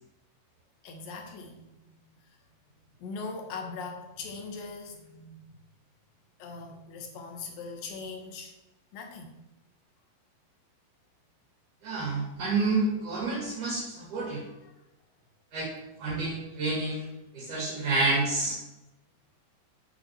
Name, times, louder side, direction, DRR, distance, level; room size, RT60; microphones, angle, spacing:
voice 1, 0.8-1.8 3.0-5.4 6.4-8.6 8.9-9.3 14.5-14.7, left 4 dB, 75° left, 3 dB, 3.3 m, -40 dB
voice 2, 11.8-14.4 15.5-15.7 16.0-18.6, right 3 dB, 60° right, -3 dB, 3.5 m, -29 dB
9.3 x 6.3 x 7.4 m, 0.94 s
omnidirectional pair, 4.1 m